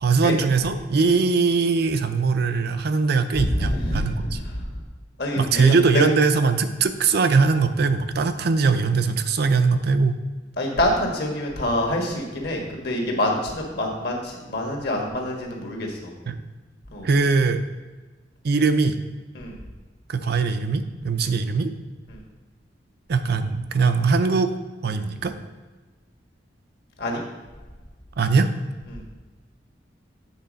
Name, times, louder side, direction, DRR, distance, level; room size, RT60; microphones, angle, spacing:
voice 1, 0.0-4.4 5.4-10.2 16.3-16.4 17.0-17.6 18.4-19.0 20.1-21.7 23.1-24.5 24.8-25.3 28.2-28.5, right 4 dB, 60° right, 9 dB, 0.5 m, -21 dB
voice 2, 3.4-4.4 5.2-6.1 10.6-16.1 16.9-17.1 19.3-19.6 21.2-21.4 22.1-22.2 27.0-27.2 28.9-29.0, left 1 dB, 60° left, 0 dB, 1.5 m, -26 dB
8.1 x 3.9 x 5.1 m, 1.2 s
head